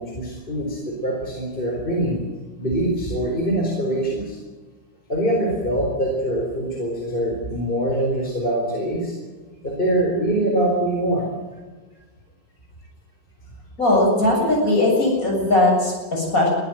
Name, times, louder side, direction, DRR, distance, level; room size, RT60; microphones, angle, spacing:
voice 1, 0.0-2.2 2.6-4.4 5.1-9.1 9.6-11.3, right 1 dB, 25° left, 0 dB, 4.5 m, -23 dB
voice 2, 13.8-16.5, left 1 dB, 50° left, -1 dB, 8.1 m, -19 dB
22.5 x 15.5 x 9.3 m, 1.3 s
omnidirectional pair, 2.0 m